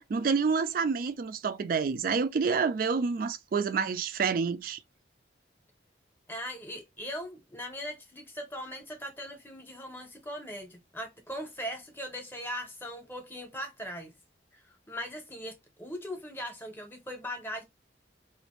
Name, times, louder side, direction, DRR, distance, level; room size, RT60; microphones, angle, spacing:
voice 1, 0.1-4.8, right 5 dB, 50° right, 0.3 m, -28 dB
voice 2, 6.3-14.1 14.5-17.6, equal, 10° left, 0.7 m, -40 dB
2.6 x 2.5 x 2.9 m
head